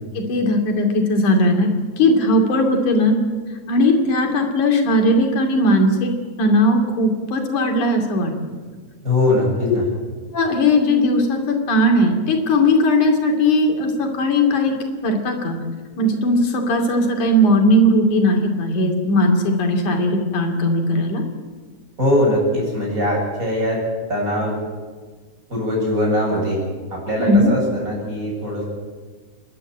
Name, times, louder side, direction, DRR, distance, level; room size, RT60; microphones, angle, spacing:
voice 1, 0.3-1.7 2.0-3.2 3.7-6.1 6.4-8.3 10.3-14.7 15.0-15.6 16.0-21.2 27.2-27.5, left 1 dB, 90° left, 3 dB, 4.1 m, -18 dB
voice 2, 9.0-9.9 22.0-23.8 24.1-24.6 25.5-26.6 26.9-28.6, left 1 dB, 25° right, -2 dB, 8.2 m, -21 dB
29.5 x 12.0 x 9.0 m, 1.4 s
omnidirectional pair, 3.4 m